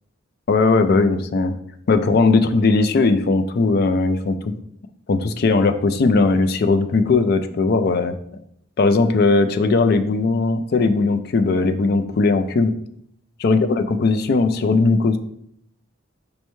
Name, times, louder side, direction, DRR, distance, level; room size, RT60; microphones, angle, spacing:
voice 1, 0.5-1.5 1.9-4.5 5.1-8.2 8.8-12.7 13.4-15.2, left 3 dB, 50° left, 9 dB, 0.4 m, -18 dB
5.3 x 3.0 x 3.3 m, 0.71 s
head